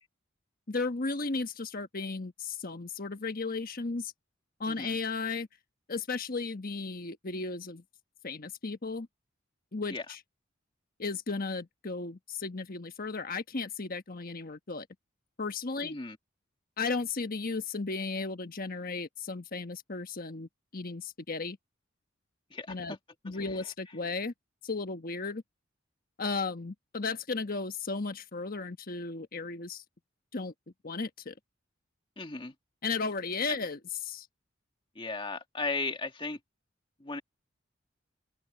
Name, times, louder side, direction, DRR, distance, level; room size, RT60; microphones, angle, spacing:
voice 1, 0.7-4.1 4.6-5.5 5.9-7.8 8.2-9.1 9.7-10.2 11.0-14.9 15.4-16.0 16.8-21.6 22.7-23.0 23.2-24.3 24.6-25.4 26.2-29.8 30.3-30.5 30.8-31.3 32.8-34.3, left 4 dB, 45° left, 1.3 m, -35 dB
voice 2, 4.7-5.0 9.9-10.1 15.8-16.2 22.5-23.0 23.4-23.6 32.2-32.5 33.5-33.6 35.0-36.4 37.0-37.2, left 3 dB, 25° left, 2.0 m, -36 dB
open air
head